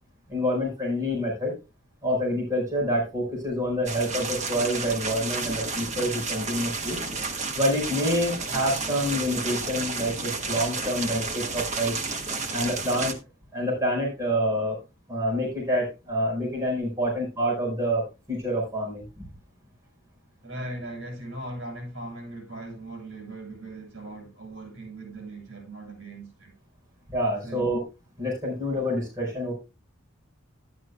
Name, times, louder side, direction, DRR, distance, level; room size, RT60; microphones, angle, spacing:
voice 1, 0.3-1.5 2.0-7.0 7.5-11.9 12.5-13.2 13.5-14.8 15.1-18.0 18.3-19.3 27.1-27.8 28.2-29.5, equal, 15° right, 4.9 m, -27 dB
sound 1, 3.9-13.1, right 4 dB, 35° right, 1.5 m, -31 dB
voice 2, 20.4-26.5 27.4-27.7, right 1 dB, 65° right, 7.4 m, -39 dB
12.5 x 11.0 x 2.2 m
head